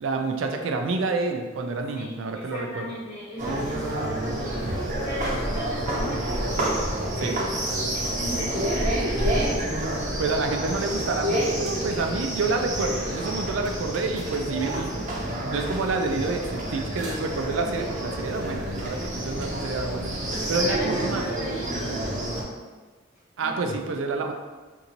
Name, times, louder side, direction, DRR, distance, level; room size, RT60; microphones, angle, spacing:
voice 1, 0.0-2.9 7.2-7.4 10.0-15.1 15.5-21.3 23.4-24.3, right 3 dB, 75° right, 4 dB, 0.4 m, -28 dB
voice 2, 1.9-4.8 5.0-6.3 7.1-9.5 20.5-22.5 23.4-23.8, equal, 35° left, -9 dB, 1.0 m, -37 dB
sound 1, 3.4-22.4, right 1 dB, 40° right, 0.7 m, -28 dB
2.9 x 2.6 x 3.9 m, 1.3 s
head